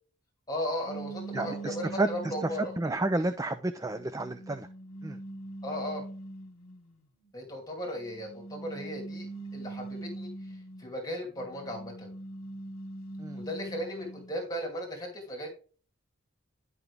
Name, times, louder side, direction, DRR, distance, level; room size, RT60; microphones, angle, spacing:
voice 1, 0.5-2.7 5.6-6.0 7.3-9.3 9.5-12.1 13.3-15.5, equal, 15° left, -1 dB, 2.6 m, -36 dB
sound 1, 0.9-3.0 3.7-6.8 7.9-10.9 11.4-14.3, right 2 dB, 85° left, 1.7 m, -42 dB
voice 2, 1.3-4.7 5.0-5.2 13.2-13.4, right 2 dB, 15° right, 11 dB, 0.4 m, -31 dB
10.5 x 5.9 x 3.4 m, 0.37 s
head